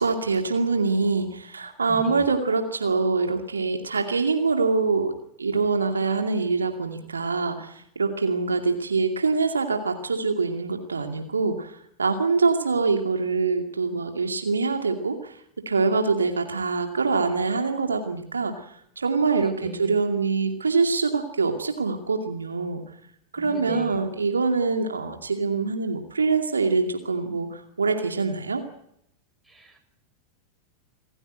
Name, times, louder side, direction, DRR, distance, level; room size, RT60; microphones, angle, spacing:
voice 1, 0.0-5.1 5.4-15.4 15.7-18.7 19.0-22.8 23.3-28.6, right 4 dB, 75° right, 4 dB, 2.4 m, -24 dB
voice 2, 1.9-2.3 19.4-19.9 23.4-24.0 29.5-29.8, right 2 dB, 5° right, 1 dB, 7.4 m, -40 dB
27.5 x 15.5 x 9.1 m, 0.74 s
figure-of-eight pair, 90°, 0 cm